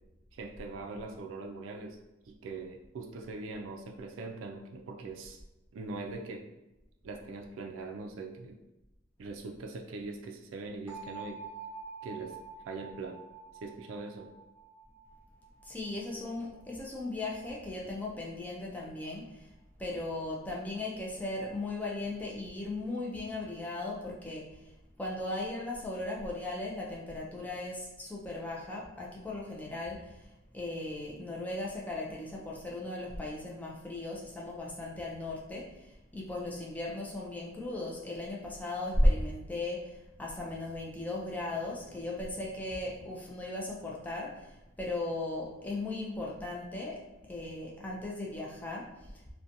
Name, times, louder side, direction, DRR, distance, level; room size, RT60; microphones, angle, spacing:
voice 1, 0.3-2.0 2.3-5.4 5.7-6.5 7.0-8.6 9.2-11.4 12.0-12.4 12.7-13.2 13.6-14.3, right 3 dB, 85° right, 2 dB, 0.3 m, -41 dB
sound 1, 10.9-16.7, right 4 dB, 10° right, 1.0 m, -48 dB
voice 2, 15.6-19.5 19.8-24.6 25.0-30.3 30.5-47.0 47.3-49.1, left 1 dB, 10° left, -3 dB, 0.4 m, -36 dB
2.7 x 2.1 x 2.5 m, 1.0 s
head